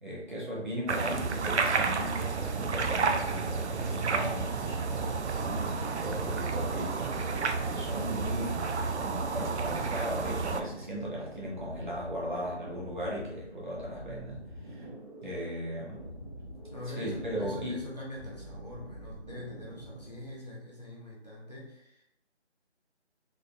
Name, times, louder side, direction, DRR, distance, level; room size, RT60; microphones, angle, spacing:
voice 1, 0.0-8.6 9.0-14.9 15.2-16.1 17.0-17.8, equal, 45° right, -5 dB, 1.1 m, -37 dB
sound 1, 0.9-10.6, right 5 dB, 75° right, 0.5 m, -31 dB
sound 2, 2.7-20.4, equal, 25° right, 0.8 m, -46 dB
voice 2, 16.7-22.0, left 1 dB, 35° left, -5 dB, 0.6 m, -44 dB
3.6 x 2.9 x 2.2 m, 0.82 s
figure-of-eight pair, 170°, 34 cm